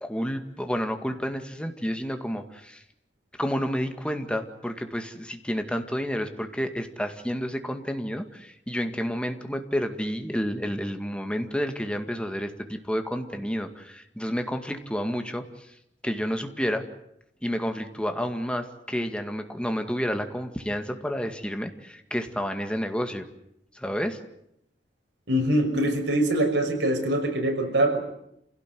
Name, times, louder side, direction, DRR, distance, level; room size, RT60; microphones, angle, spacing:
voice 1, 0.0-2.8 3.4-15.4 16.0-16.8 17.4-23.3 23.7-24.2, equal, 5° left, 6 dB, 2.1 m, -30 dB
voice 2, 25.3-28.0, right 1 dB, 80° right, 4 dB, 5.9 m, -23 dB
28.0 x 17.0 x 9.4 m, 0.78 s
head